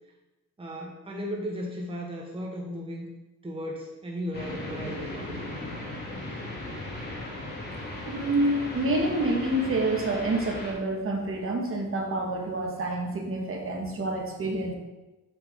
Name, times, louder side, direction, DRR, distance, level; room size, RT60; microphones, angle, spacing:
voice 1, 0.6-3.1 3.4-5.3, equal, 20° right, -1 dB, 1.2 m, -35 dB
sound 1, 4.3-10.7, left 2 dB, 35° left, 2.5 m, -37 dB
voice 2, 8.1-14.7, right 2 dB, 45° right, 0 dB, 1.6 m, -28 dB
7.2 x 5.8 x 3.7 m, 1.1 s
cardioid pair, 90°, 30 cm